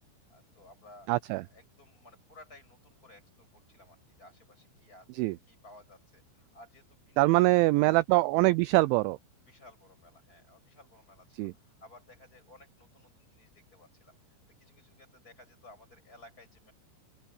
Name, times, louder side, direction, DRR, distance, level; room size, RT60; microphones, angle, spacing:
voice 1, 0.3-1.1 1.4-8.0 9.5-14.2 14.6-16.7, left 2 dB, 15° left, 8.3 m, -56 dB
voice 2, 1.1-1.4 5.1-5.4 7.2-9.2 11.4-11.5, right 21 dB, 85° right, 2.8 m, -23 dB
open air
omnidirectional pair, 5.7 m